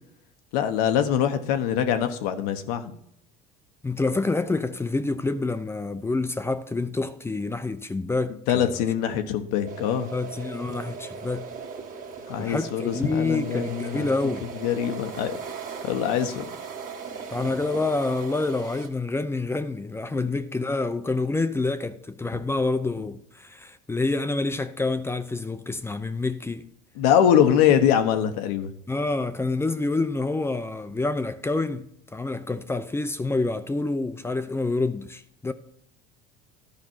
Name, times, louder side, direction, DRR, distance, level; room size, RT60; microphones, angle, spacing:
voice 1, 0.5-2.8 8.5-10.1 12.3-14.1 14.6-15.4 15.8-16.5 27.0-28.7, left 9 dB, 80° left, 1.0 m, -23 dB
voice 2, 3.8-8.8 10.1-11.5 12.4-14.5 17.3-26.7 28.9-35.5, left 3 dB, 15° left, 0.6 m, -27 dB
sound 1, 9.7-18.9, right 5 dB, 45° right, 1.8 m, -38 dB
11.5 x 5.2 x 4.5 m
supercardioid pair, 95°, 19 cm